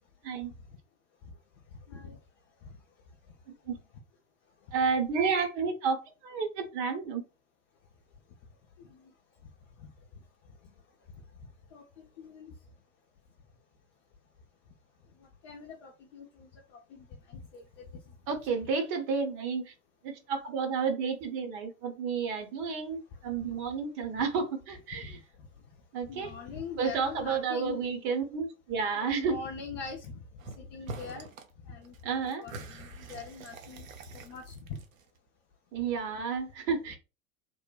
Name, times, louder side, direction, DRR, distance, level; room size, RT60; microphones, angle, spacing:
voice 1, 4.7-7.2 18.3-19.7 20.0-25.2 25.9-26.3 26.8-29.4 32.0-32.5 35.7-37.0, right 5 dB, 45° right, 0.9 m, -31 dB
voice 2, 8.8-9.1 11.7-12.5 15.2-17.6 18.5-18.6 23.2-23.5 25.1-25.2 26.1-27.8 28.9-30.2 30.6-31.3 31.7-31.9 32.4-33.9 34.1-34.8, left 4 dB, 55° left, 0.6 m, -43 dB
sound 1, 30.4-30.6 30.9-31.5 31.8-35.2, right 3 dB, 70° right, 0.6 m, -45 dB
3.0 x 2.1 x 2.3 m
figure-of-eight pair, 80°, 42 cm